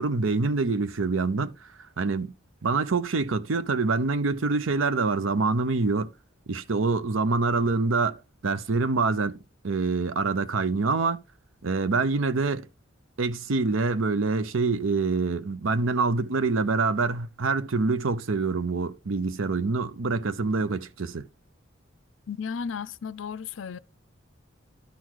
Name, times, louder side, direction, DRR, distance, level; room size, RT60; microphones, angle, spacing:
voice 1, 0.0-1.7 2.0-2.3 2.6-6.1 6.5-11.2 11.6-12.7 13.2-21.2, right 3 dB, 85° right, 0.7 m, -26 dB
voice 2, 22.3-23.8, left 6 dB, 75° left, 0.5 m, -34 dB
11.5 x 4.0 x 4.6 m
head